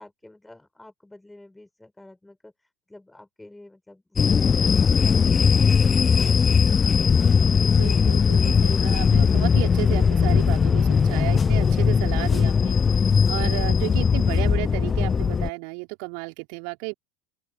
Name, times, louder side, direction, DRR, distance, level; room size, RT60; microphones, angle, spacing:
voice 1, 0.0-6.6 8.0-8.1, left 2 dB, 5° left, 7.3 m, -50 dB
sound 1, 4.2-15.5, left 6 dB, 25° left, 0.6 m, -19 dB
voice 2, 7.7-16.9, right 40 dB or more, 55° right, 4.4 m, -33 dB
open air
figure-of-eight pair, 75°, 0 cm